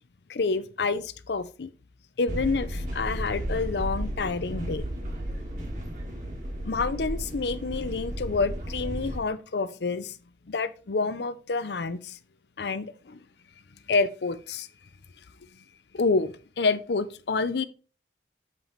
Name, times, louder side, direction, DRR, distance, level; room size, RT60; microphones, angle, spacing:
voice 1, 0.3-1.7 2.2-4.9 6.6-10.2 10.5-12.2 12.6-13.2 13.9-14.7 15.9-17.6, left 4 dB, 70° left, 0.6 m, -28 dB
sound 1, 2.3-9.2, equal, 45° right, 1.8 m, -33 dB
7.5 x 4.6 x 4.0 m
head